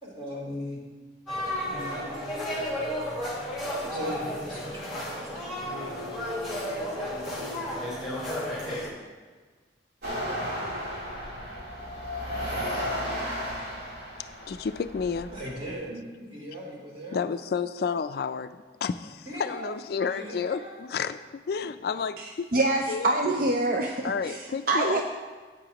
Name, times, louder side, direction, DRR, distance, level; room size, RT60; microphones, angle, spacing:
voice 1, 0.0-0.8 1.7-2.4 3.8-6.1 15.3-17.2 19.2-20.8 21.6-21.7, equal, 30° right, -5 dB, 3.2 m, -39 dB
sound 1, 1.3-8.9, equal, ahead, 3.6 m, -33 dB
sound 2, 10.0-15.7, equal, 70° right, 3.4 m, -34 dB
voice 2, 14.5-15.3 17.1-21.2 21.5-22.5 22.9-23.2 24.0-25.0, left 6 dB, 60° left, 12 dB, 0.3 m, -31 dB
voice 3, 22.2-25.0, right 2 dB, 55° right, 2 dB, 0.6 m, -26 dB
15.0 x 8.6 x 3.0 m, 1.4 s
head